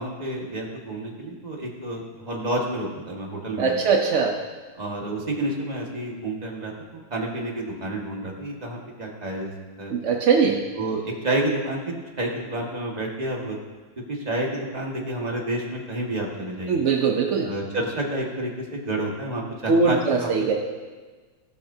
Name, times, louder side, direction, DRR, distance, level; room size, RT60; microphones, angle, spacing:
voice 1, 0.0-3.7 4.8-9.5 9.8-9.9 10.8-13.6 14.1-16.8 17.4-20.5, right 1 dB, 20° right, -1 dB, 1.7 m, -29 dB
voice 2, 3.6-4.4 9.9-10.6 16.7-17.5 19.7-20.5, right 5 dB, 65° right, 2 dB, 0.7 m, -21 dB
16.5 x 12.0 x 2.8 m, 1.4 s
omnidirectional pair, 2.2 m